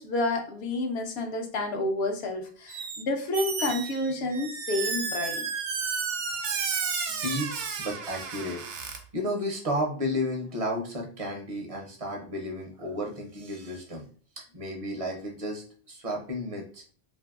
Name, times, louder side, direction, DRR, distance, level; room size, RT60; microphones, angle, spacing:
voice 1, 0.0-5.5, left 2 dB, 70° left, 4 dB, 0.8 m, -29 dB
Squeak, 2.7-3.0 3.3-9.0, right 5 dB, 85° right, 0.9 m, -32 dB
voice 2, 7.1-14.1 14.4-16.8, equal, 45° right, 0 dB, 0.5 m, -33 dB
2.8 x 2.6 x 2.3 m, 0.42 s
omnidirectional pair, 1.2 m